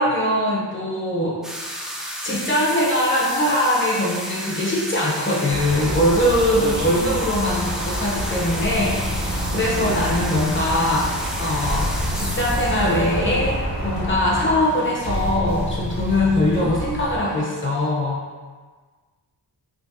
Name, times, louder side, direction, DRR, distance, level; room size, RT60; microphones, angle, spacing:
voice 1, 0.0-1.4 2.2-11.9 12.2-18.2, left 1 dB, 30° left, -5 dB, 0.8 m, -22 dB
sound 1, 1.4-17.9, equal, ahead, 0.4 m, -34 dB
sound 2, 5.5-14.5, equal, 30° right, 0.7 m, -29 dB
voice 2, 6.6-7.2 9.8-10.4 16.5-16.7, right 1 dB, 55° right, -4 dB, 0.8 m, -32 dB
sound 3, 8.6-17.2, left 1 dB, 75° left, 0.9 m, -30 dB
5.0 x 2.2 x 2.6 m, 1.4 s
wide cardioid pair, 145°, 41 cm